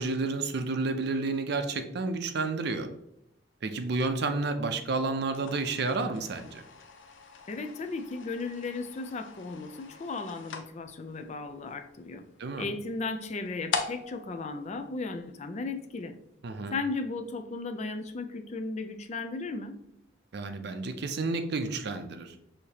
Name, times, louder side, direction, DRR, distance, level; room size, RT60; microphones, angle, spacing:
voice 1, 0.0-2.9 3.6-6.6 12.4-12.7 16.4-16.8 20.3-22.3, right 3 dB, 60° right, 8 dB, 0.5 m, -30 dB
sound 1, 5.2-15.6, left 5 dB, 80° left, 0.6 m, -42 dB
voice 2, 7.5-12.2 12.6-16.1 16.7-19.8, left 3 dB, 40° left, 7 dB, 0.4 m, -35 dB
6.4 x 2.9 x 2.8 m, 0.77 s
head